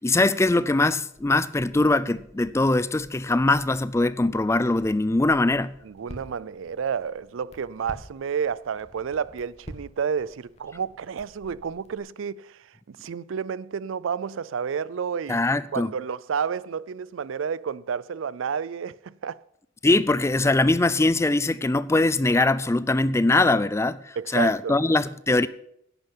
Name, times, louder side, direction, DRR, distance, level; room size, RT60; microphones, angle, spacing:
voice 1, 0.0-5.7 15.3-15.9 19.8-25.5, left 2 dB, 15° left, 0.4 m, -22 dB
Crackle, 1.1-12.0, equal, 35° left, 1.7 m, -49 dB
voice 2, 5.8-15.5 15.7-19.4 24.2-24.7, right 6 dB, 80° right, 0.4 m, -30 dB
11.0 x 9.0 x 7.3 m
head